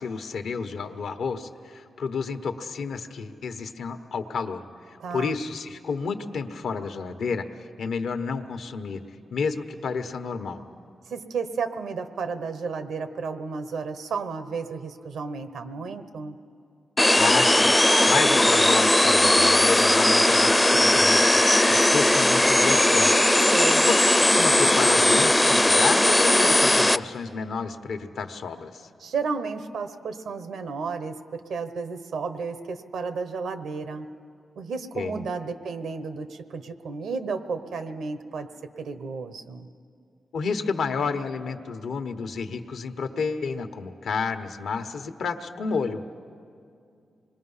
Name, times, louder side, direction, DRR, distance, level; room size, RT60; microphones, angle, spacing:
voice 1, 0.0-9.0 9.3-10.6 17.2-17.8 18.1-23.1 23.9-28.9 34.9-35.2 40.3-46.0, left 5 dB, 85° left, 7 dB, 1.1 m, -30 dB
voice 2, 5.0-5.3 11.1-16.4 23.5-23.9 29.0-34.1 34.6-38.5 38.8-39.7, right 5 dB, 90° right, 10 dB, 1.1 m, -32 dB
sound 1, 17.0-27.0, left 1 dB, 10° left, 0.5 m, -18 dB
25.5 x 21.0 x 5.6 m, 2.4 s
cardioid pair, 80°, 0 cm